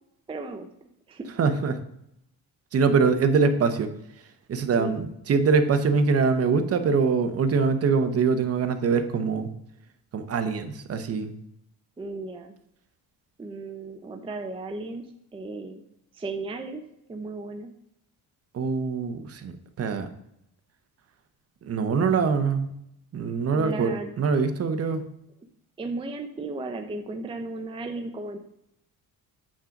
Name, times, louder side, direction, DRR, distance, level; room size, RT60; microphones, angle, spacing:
voice 1, 0.3-1.3 4.8-5.0 12.0-12.5 13.4-15.0 15.3-15.8 16.1-16.8 17.1-17.7 23.5-24.1 25.8-28.4, right 3 dB, 15° right, 5 dB, 0.5 m, -35 dB
voice 2, 1.4-1.8 2.7-3.9 4.5-9.5 10.1-11.3 18.5-20.1 21.6-22.7 23.1-25.0, right 5 dB, 40° right, 8 dB, 0.9 m, -23 dB
8.7 x 3.9 x 5.7 m, 0.79 s
cardioid pair, 150°, 36 cm